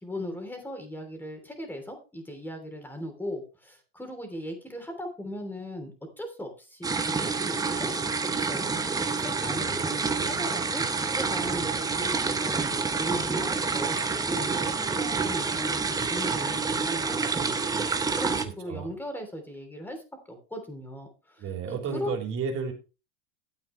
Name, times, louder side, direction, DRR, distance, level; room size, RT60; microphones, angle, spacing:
voice 1, 0.0-5.9 6.2-7.9 8.2-8.8 9.2-10.8 11.1-17.6 18.1-22.1, equal, 5° left, 4 dB, 3.2 m, -38 dB
sound 1, 6.8-18.4, right 4 dB, 10° right, 0.9 m, -28 dB
voice 2, 9.4-10.6 18.7-18.9 21.4-22.7, right 6 dB, 40° right, 2 dB, 3.9 m, -34 dB
12.5 x 8.4 x 3.3 m, 0.32 s
supercardioid pair, 125°, 35 cm